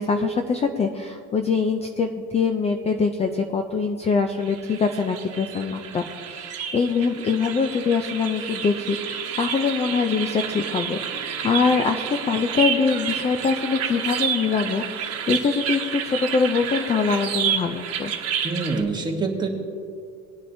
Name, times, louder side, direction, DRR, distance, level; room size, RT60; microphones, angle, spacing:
voice 1, 0.0-18.1, left 5 dB, 20° left, 5 dB, 0.4 m, -24 dB
sound 1, 4.4-18.8, right 8 dB, 50° right, 1.2 m, -30 dB
voice 2, 18.4-19.5, right 3 dB, 15° right, 1 dB, 1.1 m, -25 dB
19.5 x 9.8 x 2.7 m, 2.4 s
cardioid pair, 165°, 32 cm